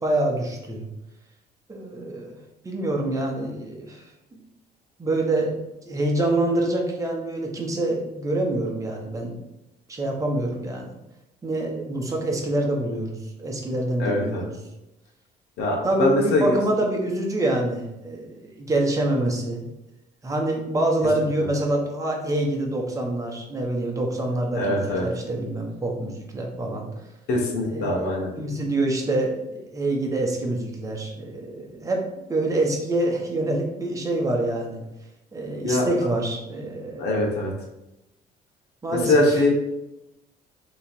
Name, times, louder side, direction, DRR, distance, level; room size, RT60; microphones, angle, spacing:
voice 1, 0.0-0.9 1.7-2.4 2.6-4.0 4.3-4.4 5.0-5.5 5.9-9.4 9.9-10.9 11.4-14.6 15.8-19.7 20.2-26.9 27.7-28.1 28.4-32.0 32.3-34.8 35.3-37.2 38.8-39.4, right 1 dB, 20° right, 0 dB, 1.0 m, -26 dB
voice 2, 14.0-14.4 15.6-16.5 24.5-25.1 27.3-28.3 35.6-35.9 37.0-37.5 38.9-39.5, left 1 dB, 75° left, -1 dB, 1.1 m, -22 dB
3.2 x 3.0 x 4.3 m, 0.92 s
cardioid pair, 110°, 17 cm